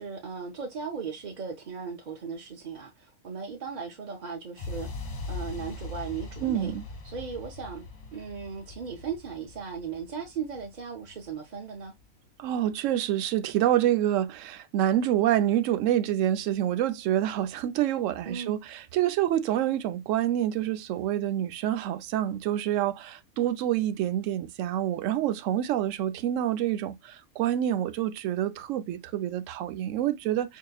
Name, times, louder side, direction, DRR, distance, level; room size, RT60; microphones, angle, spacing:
voice 1, 0.0-6.7 7.0-7.8 8.1-11.9 18.2-18.6, right 6 dB, 45° right, 0.6 m, -37 dB
sound 1, 4.6-12.5, left 3 dB, 50° left, 0.4 m, -41 dB
voice 2, 6.4-6.9 12.4-30.6, right 12 dB, 70° right, 0.9 m, -27 dB
5.3 x 2.8 x 2.3 m
omnidirectional pair, 1.4 m